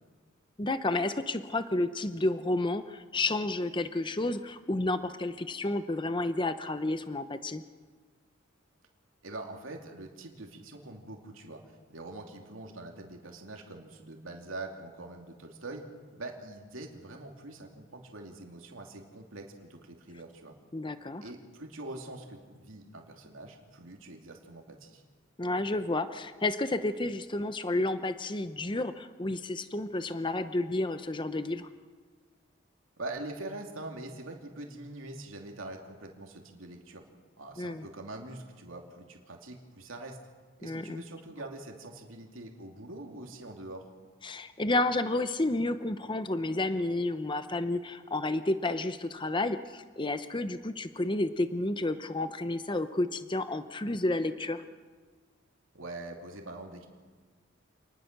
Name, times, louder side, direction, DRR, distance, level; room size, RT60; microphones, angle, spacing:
voice 1, 0.6-7.6 20.7-21.2 25.4-31.7 37.6-37.8 40.6-41.0 44.2-54.6, left 2 dB, 25° left, 10 dB, 0.8 m, -31 dB
voice 2, 9.2-11.6 11.9-15.8 16.1-20.5 21.2-25.0 33.0-37.0 37.4-40.2 40.6-43.9 55.7-56.9, right 2 dB, 80° right, 2 dB, 2.8 m, -44 dB
27.5 x 20.0 x 6.7 m, 1.5 s
head